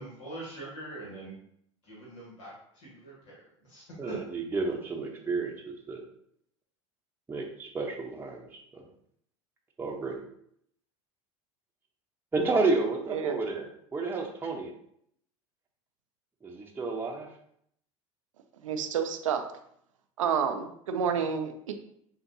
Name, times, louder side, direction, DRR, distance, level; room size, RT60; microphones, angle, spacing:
voice 1, 0.0-1.3 1.8-4.2, right 2 dB, 70° left, -5 dB, 1.7 m, -43 dB
voice 2, 4.5-6.0 7.3-8.5 8.7-8.8 9.8-10.2 12.3-14.7 16.4-17.3, right 3 dB, 15° right, -1 dB, 0.8 m, -31 dB
voice 3, 18.6-19.5 20.2-21.7, right 7 dB, 80° right, 6 dB, 0.5 m, -29 dB
7.0 x 2.5 x 2.7 m, 0.69 s
hypercardioid pair, 80°, 16 cm